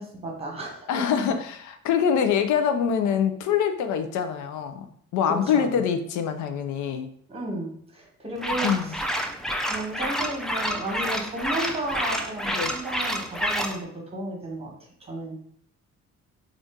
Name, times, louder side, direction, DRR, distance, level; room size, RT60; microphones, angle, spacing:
voice 1, 0.0-1.0 5.5-5.8 7.3-9.0 9.6-13.9 14.1-14.7 15.1-15.4, right 2 dB, 20° right, -1 dB, 1.2 m, -33 dB
voice 2, 0.9-7.1 8.6-9.0 12.5-12.7, left 7 dB, 75° left, 8 dB, 0.5 m, -25 dB
sound 1, 8.4-13.8, equal, ahead, 0.3 m, -29 dB
2.7 x 2.5 x 3.5 m, 0.64 s
cardioid pair, 90°, 30 cm